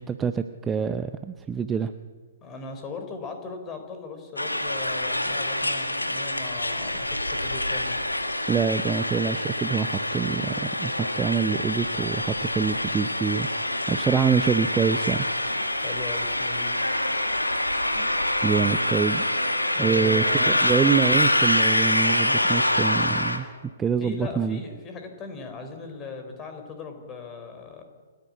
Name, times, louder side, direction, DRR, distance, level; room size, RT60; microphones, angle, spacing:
voice 1, 0.0-1.9 8.5-13.5 13.9-15.3 17.9-18.1 18.4-19.2 19.8-23.5 23.8-24.6, right 6 dB, 15° right, 10 dB, 0.6 m, -25 dB
voice 2, 2.4-7.9 15.8-16.7 18.6-18.8 19.7-20.7 24.0-27.8, left 4 dB, 20° left, 5 dB, 4.0 m, -38 dB
sound 1, 4.4-23.4, left 1 dB, 90° left, 2.0 m, -25 dB
29.0 x 10.5 x 8.6 m, 1.5 s
figure-of-eight pair, 125°, 0 cm